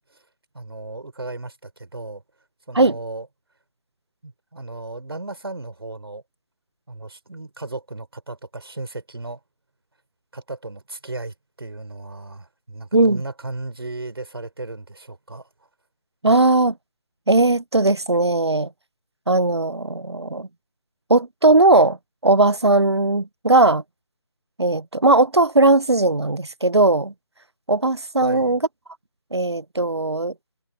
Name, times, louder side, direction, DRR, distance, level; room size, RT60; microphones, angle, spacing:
voice 1, 0.5-2.2 2.7-3.3 4.2-6.2 6.9-9.4 10.3-15.5 16.2-16.3 28.2-28.6, right 2 dB, 65° right, 4.5 m, -35 dB
voice 2, 16.2-16.7 17.3-18.7 19.3-20.5 21.1-22.0 22.2-23.8 24.6-27.1 27.7-28.6 29.3-30.3, right 2 dB, 85° right, 0.8 m, -18 dB
figure-of-eight pair, 155°, 14 cm